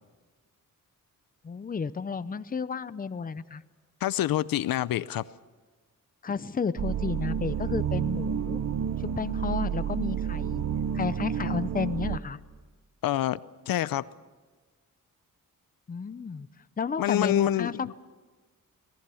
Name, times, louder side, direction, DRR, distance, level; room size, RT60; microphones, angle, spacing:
voice 1, 1.4-3.6 6.2-8.6 9.0-10.6 10.9-12.4 15.9-16.5 16.8-17.9, left 5 dB, 25° left, 0.6 m, -32 dB
voice 2, 4.0-5.2 13.0-13.4 13.7-14.0 17.0-17.9, left 13 dB, 90° left, 0.6 m, -27 dB
sound 1, 6.8-12.2, right 8 dB, 50° right, 1.0 m, -30 dB
26.0 x 19.0 x 7.0 m
wide cardioid pair, 125°, 34 cm